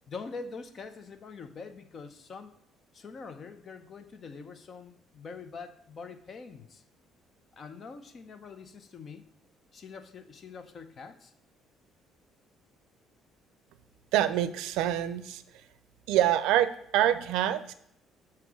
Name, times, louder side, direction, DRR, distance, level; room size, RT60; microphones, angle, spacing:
voice 1, 0.1-2.5 2.9-6.8 7.5-9.3 9.7-11.3, left 4 dB, 45° left, 9 dB, 0.7 m, -44 dB
voice 2, 14.1-15.4 16.1-17.7, right 12 dB, 85° right, 13 dB, 0.4 m, -26 dB
7.8 x 2.9 x 6.1 m, 0.72 s
cardioid pair, 90°, 0 cm